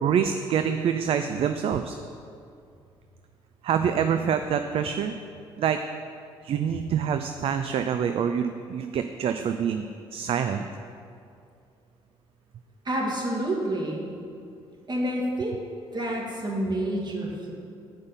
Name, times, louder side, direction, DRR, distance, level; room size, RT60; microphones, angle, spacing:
voice 1, 0.0-2.0 3.6-5.1 5.6-5.8 6.4-9.9 10.1-10.6, right 8 dB, 55° right, 8 dB, 0.4 m, -26 dB
voice 2, 12.8-14.1 14.9-15.6 15.9-17.5, right 1 dB, 40° right, -2 dB, 2.1 m, -28 dB
8.1 x 5.1 x 5.7 m, 2.4 s
supercardioid pair, 65°, 12 cm